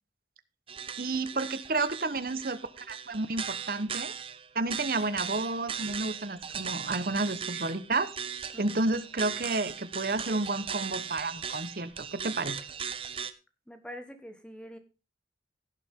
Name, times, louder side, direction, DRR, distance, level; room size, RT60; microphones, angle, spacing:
sound 1, 0.7-13.3, right 7 dB, 30° right, 0.7 m, -38 dB
voice 1, 1.0-4.1 4.5-8.1 8.6-12.6, right 2 dB, 50° right, 12 dB, 1.1 m, -31 dB
voice 2, 13.7-14.8, equal, 5° left, 8 dB, 1.3 m, -45 dB
17.0 x 7.3 x 3.7 m, 0.31 s
head